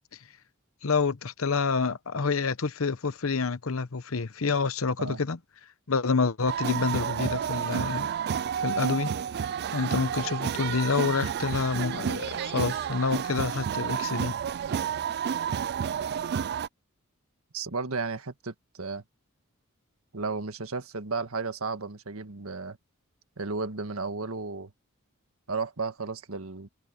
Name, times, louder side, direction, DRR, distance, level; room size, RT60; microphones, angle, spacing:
voice 1, 0.8-5.4 5.9-8.1 8.6-9.1 9.4-14.4, left 4 dB, 75° left, 0.9 m, -28 dB
sound 1, 6.5-16.7, right 8 dB, 50° right, 0.3 m, -30 dB
voice 2, 17.5-19.0 20.1-22.8 23.4-24.7 25.5-26.7, right 4 dB, 80° right, 1.6 m, -33 dB
head